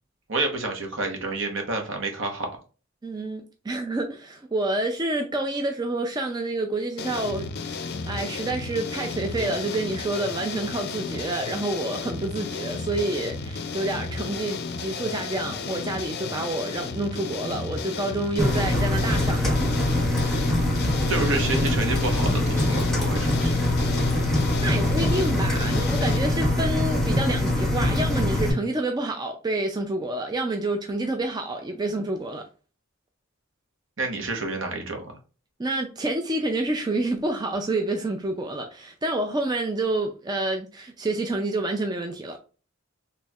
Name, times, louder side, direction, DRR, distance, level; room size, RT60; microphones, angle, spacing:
voice 1, 0.3-2.6 21.1-23.8 34.0-35.2, right 3 dB, 65° right, 1.1 m, -29 dB
voice 2, 3.0-19.5 24.6-32.4 35.6-42.4, right 2 dB, 20° right, 0.4 m, -28 dB
sound 1, 7.0-26.2, left 4 dB, 55° left, 0.5 m, -33 dB
Engine, 18.4-28.5, left 1 dB, ahead, 1.2 m, -23 dB
4.3 x 3.1 x 2.4 m
head